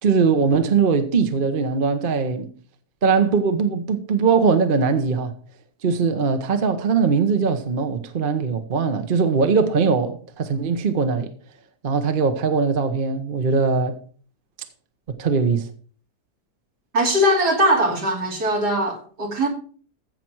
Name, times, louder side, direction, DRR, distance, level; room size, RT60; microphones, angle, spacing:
voice 1, 0.0-2.5 3.0-5.4 5.8-11.3 11.8-14.0 15.1-15.7, right 5 dB, 40° right, 1.0 m, -21 dB
voice 2, 16.9-19.5, equal, 75° right, 3.4 m, -20 dB
15.0 x 5.9 x 4.6 m
omnidirectional pair, 1.8 m